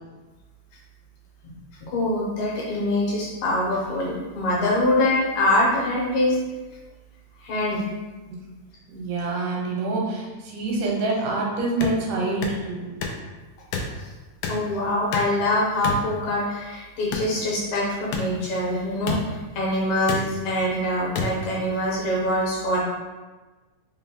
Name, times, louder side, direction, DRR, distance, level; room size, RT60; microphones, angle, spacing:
voice 1, 1.9-6.4 7.4-7.9 14.5-22.8, left 1 dB, 75° left, -4 dB, 2.1 m, -24 dB
voice 2, 8.9-12.9, right 3 dB, 90° right, -2 dB, 2.4 m, -26 dB
sound 1, 11.8-12.0 12.4-12.6 13.0-13.2 13.7-13.9 14.4-14.6 15.1-15.4 15.8-16.0 17.1-17.3 18.1-18.2 19.1-19.2 20.1-20.2 21.1-21.3, left 5 dB, 90° left, 1.4 m, -27 dB
5.3 x 2.1 x 3.5 m, 1.2 s
omnidirectional pair, 3.5 m